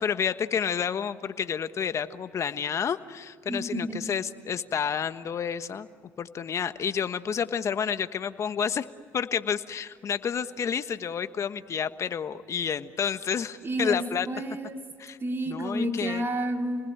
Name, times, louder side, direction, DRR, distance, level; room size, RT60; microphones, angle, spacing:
voice 1, 0.0-5.9 6.2-8.9 9.1-14.3 15.0-15.2 15.5-16.3, left 7 dB, 45° left, 11 dB, 1.3 m, -30 dB
voice 2, 3.5-4.0 13.6-14.8 15.2-16.9, right 1 dB, 35° right, 3 dB, 4.0 m, -30 dB
30.0 x 20.0 x 8.9 m, 2.1 s
supercardioid pair, 70°, 7 cm